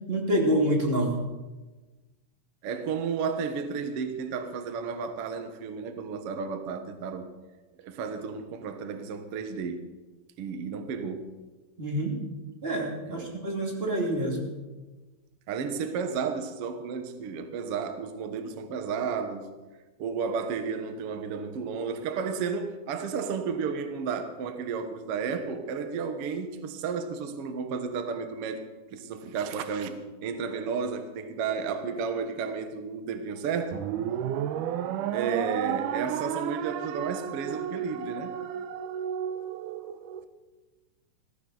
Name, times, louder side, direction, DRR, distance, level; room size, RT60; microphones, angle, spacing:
voice 1, 0.1-1.2 11.8-12.2 12.6-14.5, right 1 dB, 20° right, 2.3 m, -27 dB
voice 2, 2.6-7.3 7.8-9.9 10.4-11.4 13.1-13.4 15.5-19.5 20.0-28.6 28.9-33.8 35.1-38.4, right 5 dB, 60° right, 1.6 m, -32 dB
sound 1, 33.7-40.2, right 10 dB, 80° right, 1.9 m, -32 dB
19.0 x 16.0 x 4.0 m
omnidirectional pair, 4.4 m